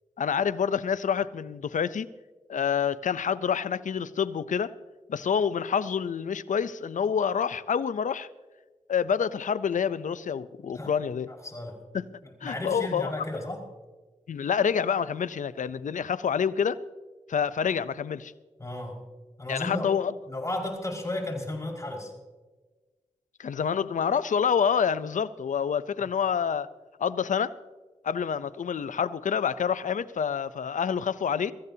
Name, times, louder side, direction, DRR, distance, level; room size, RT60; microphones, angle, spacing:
voice 1, 0.2-2.1 2.5-4.7 5.1-8.3 8.9-11.3 11.9-12.0 12.4-13.1 14.3-16.8 17.3-18.3 19.5-20.1 23.4-26.7 27.0-27.6 28.0-31.5, left 7 dB, 85° left, 0.6 m, -27 dB
voice 2, 11.3-11.8 12.4-13.6 18.6-19.0 19.4-19.9 20.3-22.1, left 1 dB, 25° left, 5.3 m, -33 dB
24.0 x 14.5 x 2.8 m
cardioid pair, 45°, 13 cm